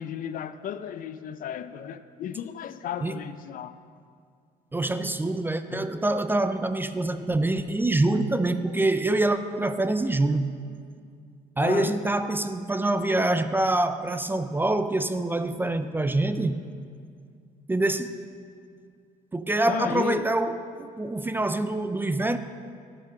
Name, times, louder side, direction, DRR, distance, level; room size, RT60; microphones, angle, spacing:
voice 1, 0.0-3.7 5.7-5.9 11.6-12.0 19.7-20.3, left 9 dB, 55° left, 0.5 m, -34 dB
voice 2, 4.7-10.5 11.6-16.6 17.7-18.2 19.3-22.4, right 2 dB, 10° right, 0.4 m, -25 dB
11.5 x 6.0 x 6.4 m
cardioid pair, 110°, 17 cm